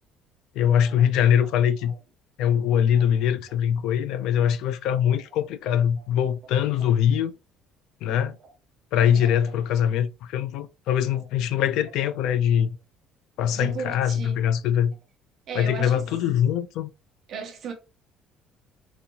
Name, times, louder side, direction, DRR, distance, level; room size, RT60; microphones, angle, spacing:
voice 1, 0.6-1.9 2.4-7.3 8.0-8.4 8.9-12.8 13.4-14.9 15.5-16.9, left 9 dB, 60° left, 0.4 m, -22 dB
voice 2, 2.7-3.1 6.8-6.9 8.4-8.5 9.0-9.4 11.1-11.3 13.5-14.4 15.5-16.1 17.3-17.7, right 6 dB, 40° right, 0.9 m, -37 dB
4.1 x 2.7 x 2.8 m
cardioid pair, 180°, 0 cm